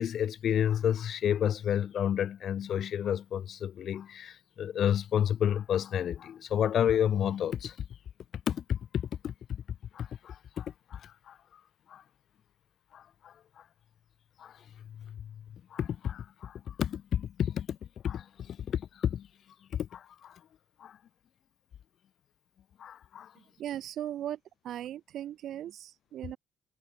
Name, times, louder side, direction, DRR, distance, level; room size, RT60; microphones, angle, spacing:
voice 1, 0.0-7.8 8.5-9.6 9.9-11.4 11.9-12.0 12.9-13.3 14.4-14.5 14.9-15.3 15.7-17.8 18.0-19.3 19.7-20.4 20.8-21.0 22.8-23.3, left 9 dB, 55° left, 0.7 m, -31 dB
voice 2, 23.6-24.4 24.6-26.4, right 11 dB, 60° right, 1.6 m, -38 dB
figure-of-eight pair, 45°, 0 cm